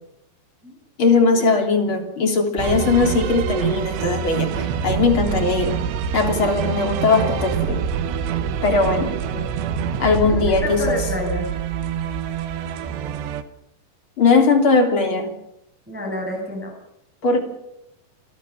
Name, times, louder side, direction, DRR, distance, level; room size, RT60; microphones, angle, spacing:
voice 1, 1.0-5.8 6.1-7.8 8.6-9.1 10.0-11.0 14.2-15.3 17.2-17.4, left 4 dB, 30° left, 5 dB, 3.1 m, -19 dB
sound 1, 2.6-13.4, right 7 dB, 75° right, 3.1 m, -25 dB
voice 2, 9.0-9.4 10.2-11.5 15.9-16.7, left 1 dB, ahead, 0 dB, 5.9 m, -29 dB
28.0 x 17.0 x 7.1 m, 0.80 s
omnidirectional pair, 5.4 m